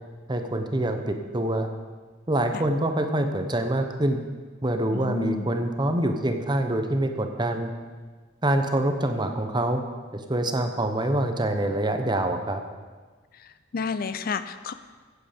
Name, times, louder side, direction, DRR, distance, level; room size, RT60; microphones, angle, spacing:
voice 1, 0.3-1.7 2.3-4.2 4.6-7.7 8.4-9.8 10.1-12.6, right 1 dB, 25° right, 6 dB, 0.9 m, -25 dB
voice 2, 4.9-5.5 13.4-14.7, left 5 dB, 50° left, 12 dB, 0.5 m, -31 dB
15.0 x 8.0 x 5.2 m, 1.4 s
head